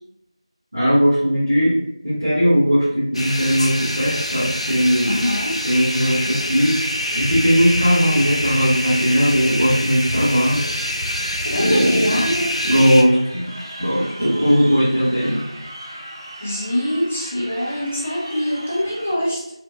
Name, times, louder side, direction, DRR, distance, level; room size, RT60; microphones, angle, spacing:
voice 1, 0.7-5.2 5.6-6.8 7.1-10.6 11.5-12.3 12.6-13.5 13.8-15.4, equal, 25° right, -15 dB, 1.3 m, -18 dB
sound 1, 3.1-13.0, left 1 dB, 85° left, 0.7 m, -25 dB
voice 2, 5.0-5.6 11.4-12.5 16.4-19.4, equal, 10° left, -4 dB, 0.3 m, -23 dB
Crowd, 12.6-19.1, right 1 dB, 40° right, 1.0 m, -37 dB
4.3 x 2.1 x 2.6 m, 0.84 s
figure-of-eight pair, 175°, 3 cm